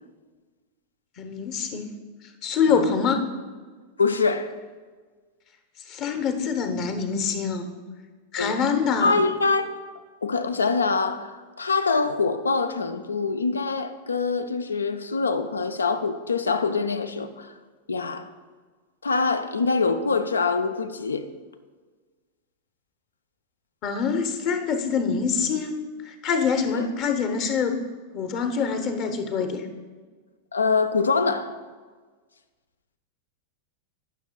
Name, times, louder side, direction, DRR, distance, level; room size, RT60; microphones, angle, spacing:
voice 1, 1.2-1.9 2.4-3.3 5.9-7.7 8.3-9.2 23.8-25.8 26.0-27.8 28.1-29.7, left 6 dB, 40° left, 7 dB, 0.9 m, -25 dB
voice 2, 4.0-4.6 8.4-8.6 9.0-9.6 10.2-17.5 17.9-18.3 19.0-21.2 26.7-26.9 30.5-31.5, left 4 dB, 75° left, 11 dB, 0.5 m, -24 dB
15.0 x 6.2 x 2.3 m, 1.5 s
figure-of-eight pair, 90°, 0 cm